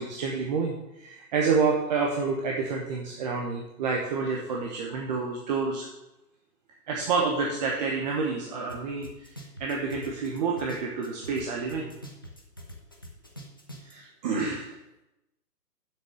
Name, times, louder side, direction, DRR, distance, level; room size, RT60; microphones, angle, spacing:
voice 1, 0.0-5.8 6.9-9.1 9.6-11.9 13.9-14.7, right 4 dB, 25° right, -1 dB, 1.1 m, -28 dB
sound 1, 8.7-8.8 9.0-11.4 11.7-13.9, right 1 dB, 15° left, 0.4 m, -43 dB
7.4 x 6.8 x 7.6 m, 0.93 s
hypercardioid pair, 145°, 48 cm